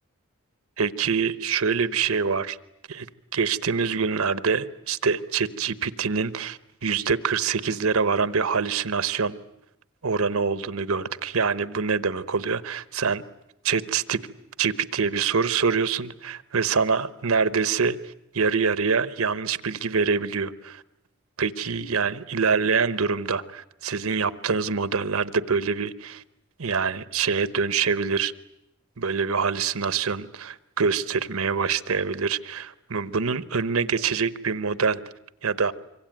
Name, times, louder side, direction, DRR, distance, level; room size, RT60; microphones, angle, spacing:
voice 1, 0.8-2.6 2.9-3.1 3.3-9.3 10.0-13.2 13.6-14.2 14.6-18.0 18.3-20.8 21.4-26.2 26.6-28.3 29.0-35.0 35.4-35.7, right 5 dB, 80° right, 15 dB, 1.0 m, -25 dB
26.0 x 24.0 x 9.1 m, 0.86 s
head